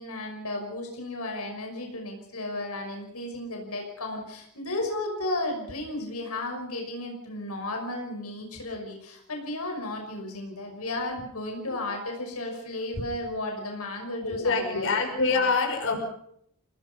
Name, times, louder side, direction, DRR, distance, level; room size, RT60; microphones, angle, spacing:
voice 1, 0.0-14.9 15.3-15.5, left 2 dB, 85° left, 2 dB, 6.0 m, -34 dB
voice 2, 14.2-16.0, left 4 dB, 60° left, 2 dB, 6.1 m, -25 dB
29.0 x 19.0 x 5.6 m, 0.69 s
head